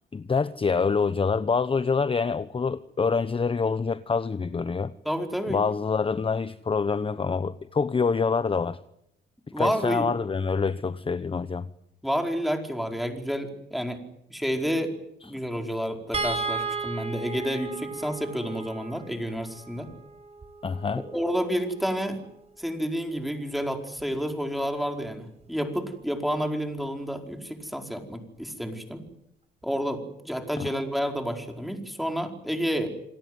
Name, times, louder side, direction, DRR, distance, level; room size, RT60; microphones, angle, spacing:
voice 1, 0.1-4.9 5.5-8.8 9.6-11.7 20.6-21.0 30.6-30.7, left 5 dB, 25° left, 13 dB, 1.0 m, -26 dB
voice 2, 5.0-5.6 9.5-10.1 12.0-14.0 14.3-14.9 15.2-19.9 21.0-22.2 22.6-29.0 29.6-32.9, equal, ahead, 4 dB, 4.8 m, -30 dB
sound 1, 16.1-22.5 24.0-24.2 24.5-24.7, right 4 dB, 30° right, 5.1 m, -35 dB
28.0 x 18.0 x 9.5 m, 0.79 s
cardioid pair, 90°, 20 cm